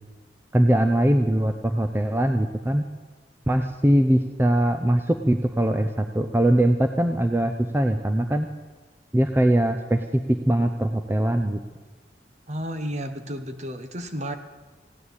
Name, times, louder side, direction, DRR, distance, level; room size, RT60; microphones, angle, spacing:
voice 1, 0.5-2.8 3.5-8.5 9.1-11.6, right 1 dB, 15° right, 6 dB, 0.6 m, -21 dB
voice 2, 12.5-14.4, equal, 40° right, 8 dB, 1.2 m, -32 dB
16.0 x 9.9 x 8.2 m, 1.4 s
head